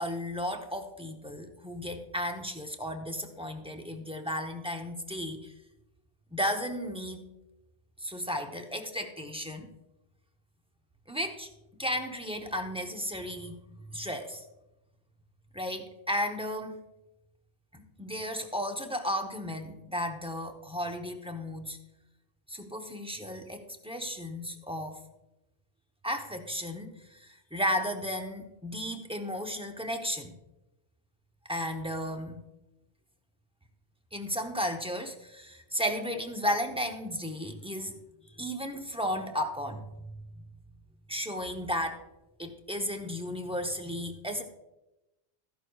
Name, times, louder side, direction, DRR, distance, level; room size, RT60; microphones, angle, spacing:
voice 1, 0.0-5.5 6.3-7.2 8.0-9.7 11.1-13.6 13.9-14.4 15.5-16.8 17.7-21.8 22.5-25.0 26.0-30.3 31.5-32.4 34.1-37.9 38.3-40.4 41.1-42.0 42.4-44.4, equal, 5° right, 4 dB, 0.6 m, -34 dB
14.0 x 11.0 x 2.3 m, 0.98 s
omnidirectional pair, 1.2 m